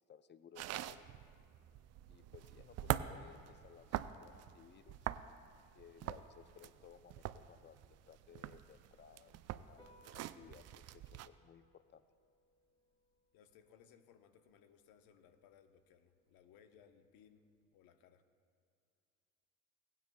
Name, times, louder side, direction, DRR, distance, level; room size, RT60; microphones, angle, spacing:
voice 1, 0.1-1.1 2.1-5.1 5.7-12.0, left 8 dB, 30° left, 13 dB, 0.5 m, -60 dB
sound 1, 0.6-11.3, right 13 dB, 40° right, 0.4 m, -44 dB
Piano, 9.8-17.7, left 1 dB, 10° left, 2.1 m, -71 dB
voice 2, 13.3-17.4 17.7-18.2, left 8 dB, 60° left, 8 dB, 1.0 m, -64 dB
17.5 x 9.4 x 2.3 m, 2.4 s
hypercardioid pair, 70°, 40 cm